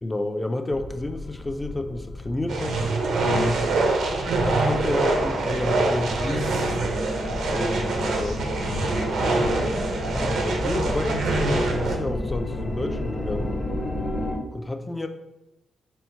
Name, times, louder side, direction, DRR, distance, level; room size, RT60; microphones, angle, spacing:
voice 1, 0.0-2.8 3.2-3.6 4.5-6.6 7.5-8.5 10.1-13.6 14.5-15.1, left 2 dB, 20° left, 7 dB, 0.4 m, -30 dB
sound 1, 0.7-14.4, left 1 dB, 40° left, 1.0 m, -32 dB
sound 2, 2.5-12.0, right 3 dB, 80° right, 0.6 m, -25 dB
4.2 x 2.1 x 4.4 m, 0.95 s
cardioid pair, 75°, 0 cm